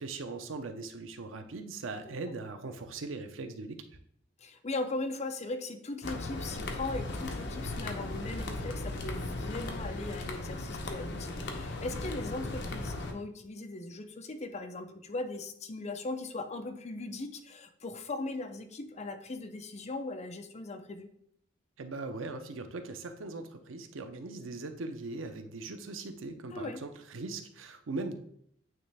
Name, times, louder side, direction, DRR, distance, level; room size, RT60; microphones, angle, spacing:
voice 1, 0.0-3.8 21.8-28.2, right 3 dB, 90° right, 7 dB, 0.6 m, -40 dB
voice 2, 4.4-21.1 26.5-26.8, left 2 dB, 35° left, 7 dB, 0.6 m, -39 dB
sound 1, 6.0-13.1, left 2 dB, 60° left, 0.9 m, -37 dB
8.8 x 3.2 x 3.4 m, 0.69 s
head